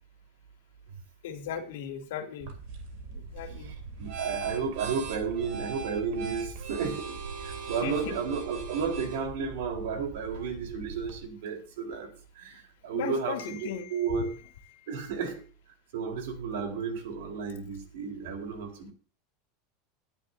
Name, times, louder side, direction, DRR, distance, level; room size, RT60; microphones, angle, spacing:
voice 1, 1.2-2.5 3.1-3.7 7.8-8.2 12.9-14.0 14.7-14.9, left 9 dB, 75° left, 5 dB, 2.6 m, -37 dB
sound 1, 2.4-11.2, right 5 dB, 50° right, 2.8 m, -40 dB
voice 2, 3.6-12.1 12.4-14.3 14.9-15.4 15.9-18.9, right 6 dB, 70° right, 4 dB, 4.2 m, -33 dB
20.5 x 10.5 x 2.8 m, 0.38 s
supercardioid pair, 180°, 0 cm